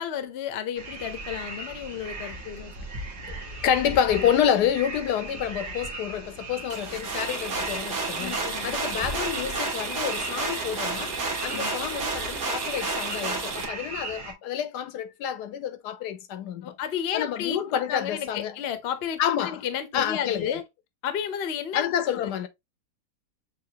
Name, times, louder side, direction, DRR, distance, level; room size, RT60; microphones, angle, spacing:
voice 1, 0.0-2.7 8.2-8.8 11.5-11.7 16.6-17.6 17.9-20.6 21.0-22.5, left 9 dB, 50° left, 0.8 m, -32 dB
sound 1, 0.7-14.3, right 2 dB, 55° right, 1.8 m, -37 dB
voice 2, 3.6-16.7 17.1-18.6 19.2-19.6 19.9-20.6 21.7-22.5, left 9 dB, 75° left, 1.1 m, -28 dB
sound 2, 6.7-13.6, right 3 dB, 80° right, 2.2 m, -31 dB
6.9 x 2.8 x 2.8 m
omnidirectional pair, 1.8 m